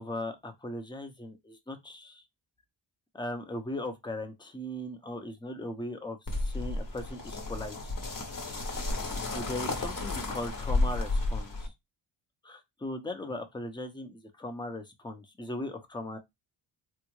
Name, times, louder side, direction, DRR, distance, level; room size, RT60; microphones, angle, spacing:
voice 1, 0.0-2.2 3.1-7.9 8.4-8.6 9.3-11.7 12.4-16.2, left 1 dB, 10° left, 0.7 m, -38 dB
sound 1, 6.3-11.7, left 2 dB, 45° left, 1.0 m, -32 dB
3.5 x 2.3 x 3.1 m
cardioid pair, 65°, 47 cm